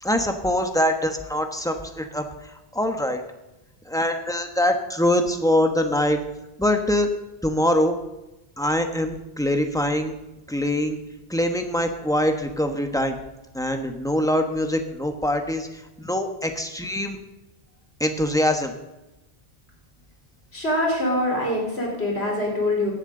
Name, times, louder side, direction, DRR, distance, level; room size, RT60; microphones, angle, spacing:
voice 1, 0.0-3.2 3.8-6.2 6.6-7.1 7.4-8.0 8.6-10.1 10.5-11.0 11.3-13.2 13.5-17.2 18.0-18.7, left 1 dB, 5° left, 5 dB, 1.2 m, -23 dB
voice 2, 20.5-22.9, left 1 dB, 80° left, -1 dB, 4.2 m, -24 dB
17.5 x 11.0 x 3.9 m, 0.95 s
omnidirectional pair, 1.1 m